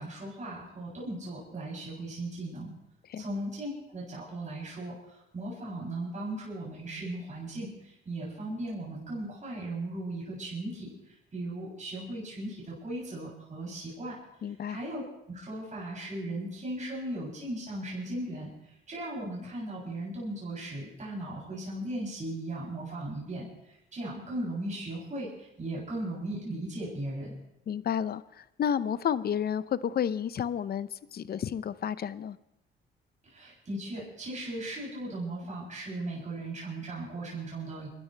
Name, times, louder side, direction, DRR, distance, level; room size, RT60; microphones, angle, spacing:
voice 1, 0.0-2.7 3.2-4.9 5.3-7.7 8.0-10.9 11.3-14.1 14.7-15.0 15.3-18.5 18.9-23.5 23.9-27.3 33.3-37.9, right 1 dB, 40° right, -6 dB, 7.9 m, -37 dB
voice 2, 14.4-14.8 27.7-32.4, left 8 dB, 50° left, 15 dB, 0.8 m, -31 dB
29.5 x 12.5 x 3.4 m, 0.83 s
cardioid pair, 90°, 20 cm